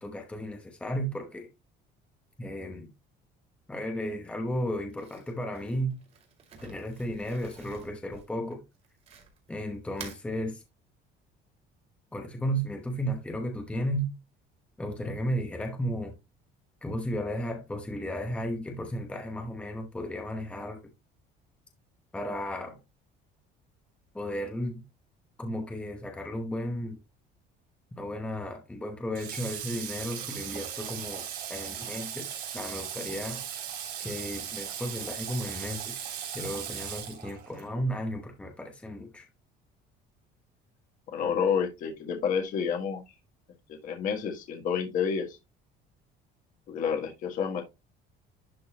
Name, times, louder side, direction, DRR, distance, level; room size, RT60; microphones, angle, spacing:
voice 1, 0.0-1.5 2.4-2.9 3.7-5.9 6.6-8.6 9.5-10.6 12.1-14.1 14.8-16.1 16.8-20.8 22.1-22.8 24.1-24.8 25.4-27.0 28.0-33.4 34.0-36.0 36.3-39.3, equal, 5° left, 1.0 m, -34 dB
Crumpling crinkling, 4.9-9.5 9.9-10.2, right 5 dB, 35° right, 2.3 m, -48 dB
Water / Water tap faucet, 29.2-37.7, right 9 dB, 55° right, 3.4 m, -38 dB
voice 2, 41.1-43.0 43.7-45.4 46.7-47.6, left 7 dB, 45° left, 1.7 m, -29 dB
11.0 x 3.9 x 2.9 m
cardioid pair, 175°, 19 cm